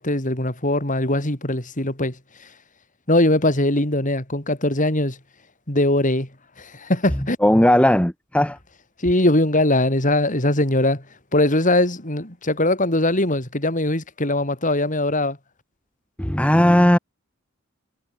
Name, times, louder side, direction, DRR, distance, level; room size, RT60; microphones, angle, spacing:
voice 1, 0.0-2.5 3.1-5.2 5.7-6.3 6.6-7.4 9.0-11.0 11.3-15.4, left 1 dB, 40° left, 5.3 m, -21 dB
voice 2, 7.4-8.6 16.2-17.0, left 1 dB, 5° left, 1.1 m, -16 dB
head